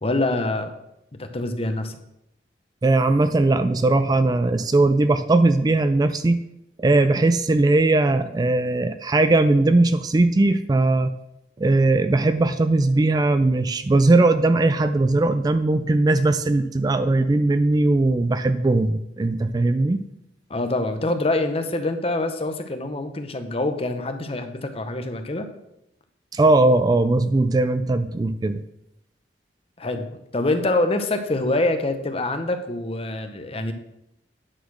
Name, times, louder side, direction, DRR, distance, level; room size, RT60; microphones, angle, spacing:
voice 1, 0.0-0.7 1.2-2.0 20.5-25.5 29.8-33.7, left 2 dB, 35° left, 8 dB, 0.9 m, -25 dB
voice 2, 2.8-6.4 6.8-11.1 11.6-20.0 26.3-28.6, right 2 dB, 20° right, 11 dB, 0.3 m, -19 dB
9.9 x 4.2 x 6.3 m, 0.83 s
head